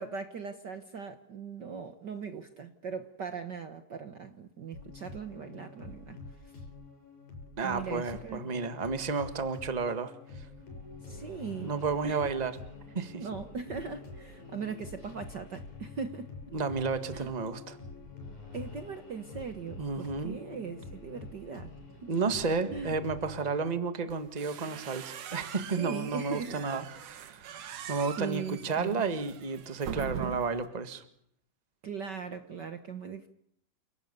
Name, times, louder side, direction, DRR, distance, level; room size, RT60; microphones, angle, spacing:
voice 1, 0.0-6.2 6.4-6.6 7.6-8.5 11.0-11.7 12.0-12.2 13.2-16.3 17.1-17.3 18.5-21.7 22.0-22.1 22.7-23.0 25.8-26.7 27.6-27.7 28.2-29.0 31.8-33.3, right 6 dB, 90° right, 9 dB, 0.9 m, -39 dB
sound 1, 4.7-23.8, left 4 dB, 60° left, 8.2 m, -47 dB
voice 2, 7.6-10.4 11.6-12.5 12.9-13.2 16.5-17.8 19.8-20.4 22.1-27.5 27.9-31.0, right 4 dB, 30° right, 10 dB, 0.8 m, -32 dB
sound 2, 24.1-30.7, right 9 dB, 70° right, 3.1 m, -42 dB
29.5 x 18.0 x 6.8 m, 0.71 s
omnidirectional pair, 3.9 m